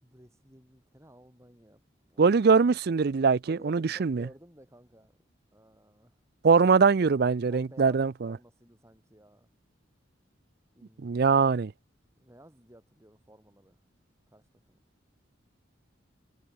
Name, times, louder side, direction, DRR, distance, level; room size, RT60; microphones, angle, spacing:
voice 1, 0.0-2.4 3.4-5.2 5.5-6.2 7.5-9.5 10.7-11.4 12.2-13.8 14.3-14.8, right 1 dB, 15° right, 5.8 m, -54 dB
voice 2, 2.2-4.3 6.4-8.4 11.0-11.7, right 5 dB, 55° right, 0.4 m, -22 dB
head